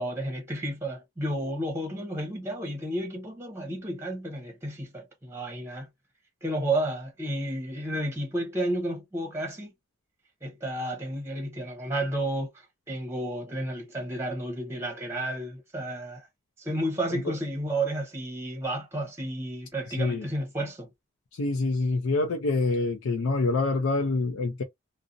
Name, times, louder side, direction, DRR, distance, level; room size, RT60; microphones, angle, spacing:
voice 1, 0.0-5.9 6.4-9.7 10.4-16.3 16.6-20.9, right 1 dB, 10° right, 0.7 m, -32 dB
voice 2, 20.0-20.3 21.3-24.6, left 3 dB, 90° left, 0.5 m, -26 dB
2.5 x 2.0 x 2.5 m
head